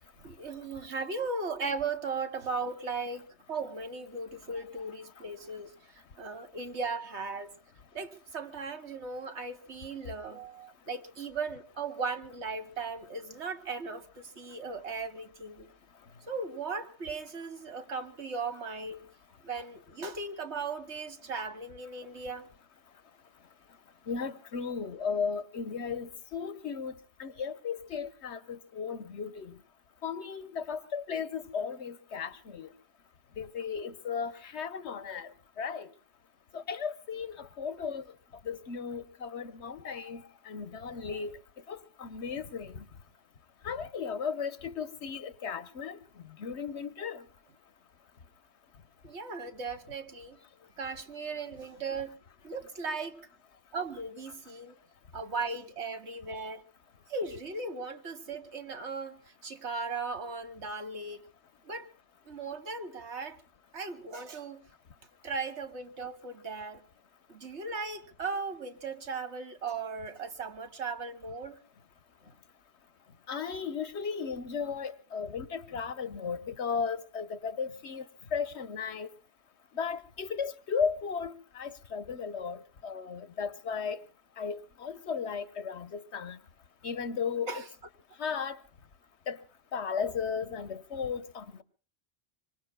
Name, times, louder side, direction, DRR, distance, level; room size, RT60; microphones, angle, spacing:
voice 1, 0.2-7.6 7.9-15.7 16.3-19.1 19.4-22.5 49.0-50.4 50.8-52.2 52.4-53.3 53.7-54.8 55.1-56.6 57.1-61.2 61.6-61.9 62.3-63.4 63.7-64.6 65.2-66.8 67.3-71.6 87.5-87.7, right 4 dB, 85° right, 1.8 m, -37 dB
voice 2, 24.1-26.9 27.2-29.5 30.0-32.7 33.4-35.3 35.6-35.9 36.5-38.0 38.4-41.3 41.7-42.9 43.6-46.0 46.4-47.2 73.3-78.0 78.3-79.1 79.7-84.0 84.4-86.4 86.8-87.5 88.2-88.6 89.3-89.4 89.7-91.6, left 6 dB, 80° left, 1.3 m, -35 dB
26.0 x 24.0 x 2.2 m
omnidirectional pair, 1.1 m